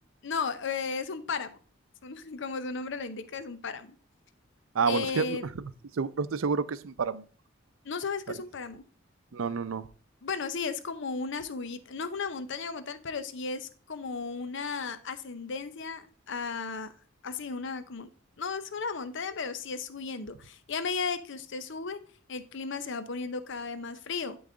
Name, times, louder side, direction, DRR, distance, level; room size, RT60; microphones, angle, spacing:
voice 1, 0.2-1.6 2.0-4.0 4.9-5.5 7.8-8.8 10.2-16.9 17.2-18.1 18.4-22.0 22.3-24.4, left 4 dB, 60° left, 0.7 m, -35 dB
voice 2, 4.7-5.4 6.0-7.2 9.3-9.9, right 5 dB, 75° right, 0.5 m, -29 dB
12.0 x 4.0 x 3.8 m
head